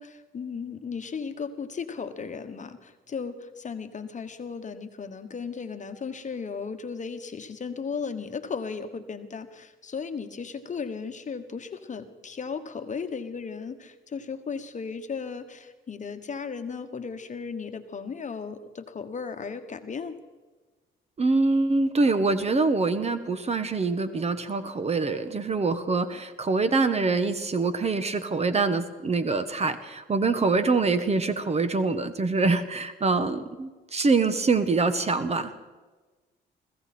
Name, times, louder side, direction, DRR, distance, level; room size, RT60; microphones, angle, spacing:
voice 1, 0.0-20.1, left 5 dB, 40° left, 8 dB, 1.3 m, -36 dB
voice 2, 21.2-35.5, right 3 dB, 30° right, 11 dB, 1.2 m, -25 dB
21.5 x 15.0 x 4.3 m, 1.2 s
cardioid pair, 90°, 20 cm